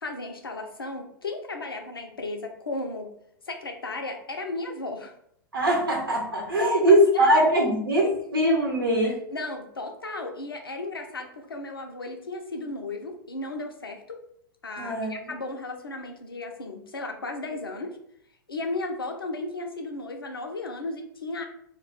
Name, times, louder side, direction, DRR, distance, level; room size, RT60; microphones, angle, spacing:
voice 1, 0.0-3.1 3.5-5.1 5.5-5.7 6.6-7.4 8.0-8.1 9.0-14.2 14.6-18.0 18.5-21.5, left 2 dB, 85° left, 3 dB, 0.5 m, -35 dB
voice 2, 5.5-9.2 14.8-15.1, right 1 dB, 85° right, -1 dB, 0.7 m, -21 dB
2.3 x 2.2 x 3.7 m, 0.70 s
figure-of-eight pair, 100°, 12 cm